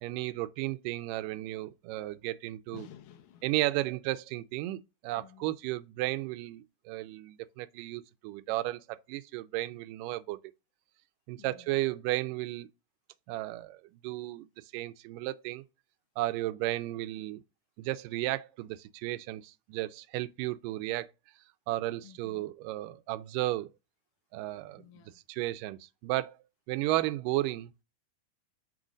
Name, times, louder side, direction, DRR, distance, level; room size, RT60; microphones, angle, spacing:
voice 1, 0.0-2.9 3.4-10.4 11.3-12.7 13.3-14.5 14.7-15.6 16.2-17.4 17.8-21.1 21.7-23.7 24.3-24.8 25.3-26.4 26.7-27.7, right 17 dB, 90° right, 2.2 m, -34 dB
voice 2, 2.7-3.5 5.1-5.5 11.4-11.8 22.0-22.5 24.8-25.2, left 11 dB, 80° left, 2.4 m, -52 dB
6.1 x 3.8 x 6.1 m
omnidirectional pair, 3.7 m